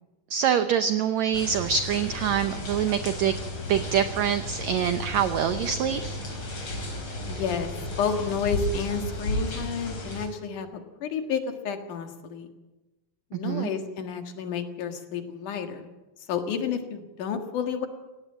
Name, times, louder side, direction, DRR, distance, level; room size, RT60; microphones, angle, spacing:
voice 1, 0.3-3.4 3.7-6.0 13.3-13.7, right 8 dB, 70° right, 10 dB, 1.7 m, -25 dB
sound 1, 1.3-10.3, left 1 dB, 40° left, 4.8 m, -33 dB
voice 2, 7.2-7.7 8.0-12.5 13.3-15.9 16.3-17.9, left 6 dB, 65° left, 6 dB, 3.2 m, -30 dB
17.5 x 17.5 x 8.8 m, 1.1 s
omnidirectional pair, 4.0 m